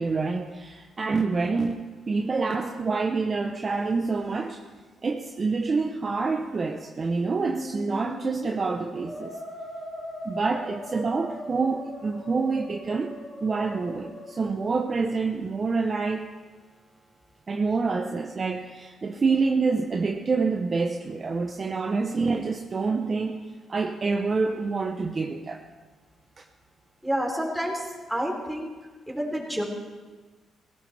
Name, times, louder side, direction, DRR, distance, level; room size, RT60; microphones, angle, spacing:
voice 1, 0.0-1.8 2.1-4.6 5.0-9.4 10.2-13.1 13.4-16.3 17.5-23.4 23.7-25.6, right 4 dB, 35° right, 3 dB, 0.9 m, -27 dB
Musical instrument, 7.1-15.2, left 1 dB, 75° left, 5.3 m, -40 dB
voice 2, 27.0-28.7 29.1-29.6, equal, 5° right, -1 dB, 3.5 m, -29 dB
17.5 x 16.5 x 3.5 m, 1.3 s
cardioid pair, 90°, 0 cm